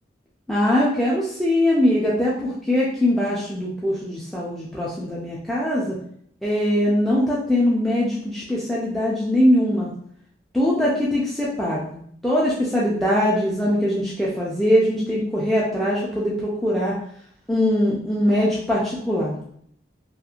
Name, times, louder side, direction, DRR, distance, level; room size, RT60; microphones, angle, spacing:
voice 1, 0.5-6.0 6.4-9.9 10.5-16.9 17.5-19.4, left 1 dB, ahead, -6 dB, 0.4 m, -22 dB
2.9 x 2.4 x 2.4 m, 0.64 s
head